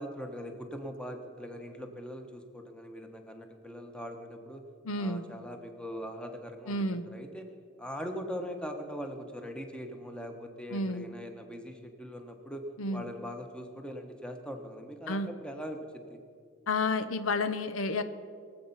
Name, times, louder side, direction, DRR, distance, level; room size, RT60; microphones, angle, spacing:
voice 1, 0.0-4.6 5.0-6.8 7.1-7.5 7.8-12.6 12.9-16.2, equal, 5° left, 4 dB, 1.1 m, -41 dB
voice 2, 4.8-5.2 6.7-7.1 10.7-11.1 12.8-13.1 15.1-15.3 16.7-18.0, left 2 dB, 85° left, 11 dB, 0.7 m, -30 dB
22.5 x 7.8 x 5.6 m, 2.2 s
head